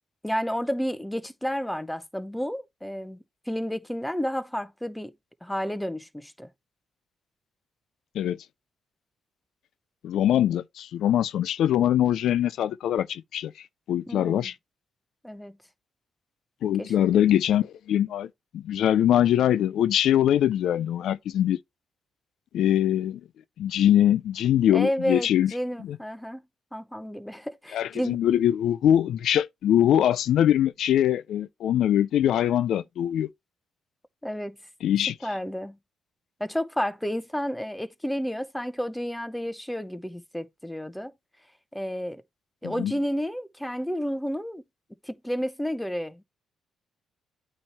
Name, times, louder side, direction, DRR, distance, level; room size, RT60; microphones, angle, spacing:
voice 1, 0.2-5.1 5.4-6.5 14.1-14.5 15.2-15.6 16.8-16.9 24.7-26.4 26.7-28.2 34.2-34.6 35.2-35.8 36.4-41.1 41.7-42.2 42.6-44.6 45.0-46.2, equal, 5° left, 0.7 m, -31 dB
voice 2, 10.0-14.5 16.6-21.6 22.5-23.2 23.6-25.5 25.8-26.0 27.7-33.3 34.8-35.1 42.6-42.9, left 11 dB, 75° left, 0.3 m, -23 dB
8.7 x 3.0 x 4.2 m
cardioid pair, 90°, 0 cm